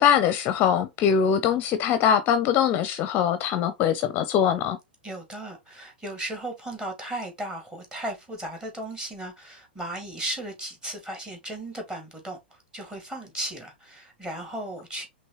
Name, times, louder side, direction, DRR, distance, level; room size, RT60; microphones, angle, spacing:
voice 1, 0.0-4.8, left 8 dB, 35° left, 0.6 m, -22 dB
voice 2, 5.0-15.1, right 1 dB, 15° right, 1.9 m, -36 dB
5.3 x 3.2 x 2.9 m
hypercardioid pair, 110°, 6 cm